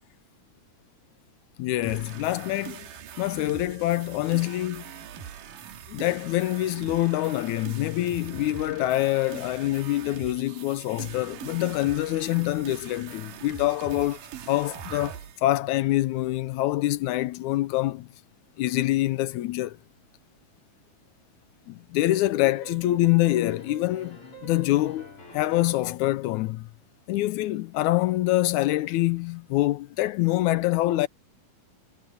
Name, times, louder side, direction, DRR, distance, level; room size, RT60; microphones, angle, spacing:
voice 1, 1.6-2.9 3.2-4.9 5.9-14.2 14.5-18.1 18.6-19.8 21.7-26.7 27.1-31.1, left 16 dB, 80° left, 1.9 m, -25 dB
sound 1, 1.8-15.4, right 9 dB, 85° right, 3.2 m, -42 dB
sound 2, 22.4-26.0, right 3 dB, 40° left, 6.4 m, -46 dB
omnidirectional pair, 3.7 m